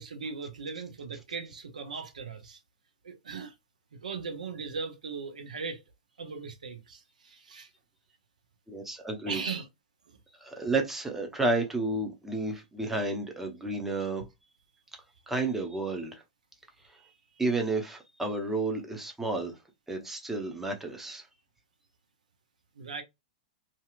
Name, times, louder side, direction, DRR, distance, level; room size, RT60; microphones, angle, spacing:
voice 1, 0.0-2.6 3.0-3.5 4.0-5.8 6.2-7.7 9.3-9.7 10.1-10.2 22.8-23.0, right 5 dB, 75° right, 0.6 m, -38 dB
voice 2, 8.7-9.4 10.3-14.2 15.3-16.2 17.4-19.6 19.9-21.3, right 2 dB, 5° right, 0.7 m, -31 dB
2.7 x 2.5 x 2.3 m
figure-of-eight pair, 105°, 4 cm